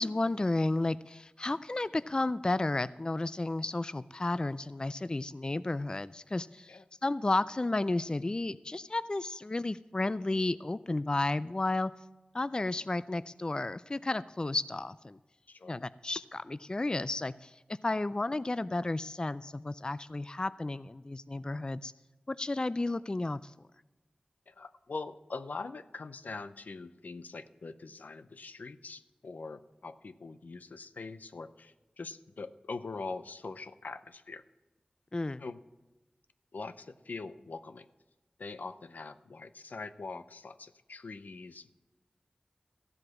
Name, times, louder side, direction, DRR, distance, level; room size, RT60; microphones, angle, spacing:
voice 1, 0.0-11.9 12.3-15.2 15.6-17.5 17.8-21.9 22.3-23.5 35.1-35.4, left 2 dB, 30° left, 15 dB, 0.3 m, -32 dB
voice 2, 15.5-15.8 24.5-34.4 35.4-35.6 36.5-37.9 38.4-41.7, left 3 dB, 80° left, 11 dB, 0.6 m, -43 dB
14.5 x 7.9 x 5.9 m, 1.1 s
wide cardioid pair, 50°, 3 cm